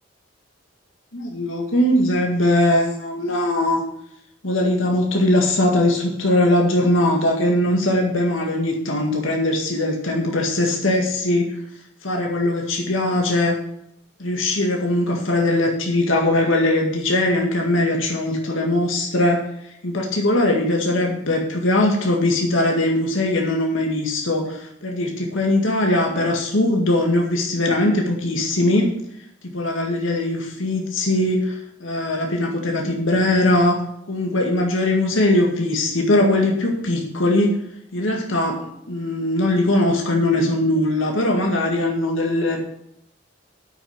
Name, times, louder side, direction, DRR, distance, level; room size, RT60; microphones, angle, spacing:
voice 1, 1.1-3.8 4.4-11.5 12.0-13.6 14.2-19.5 19.8-28.9 29.5-33.8 34.1-37.6 37.9-42.6, left 1 dB, 70° left, 1 dB, 1.9 m, -20 dB
8.6 x 6.5 x 7.2 m, 0.75 s
head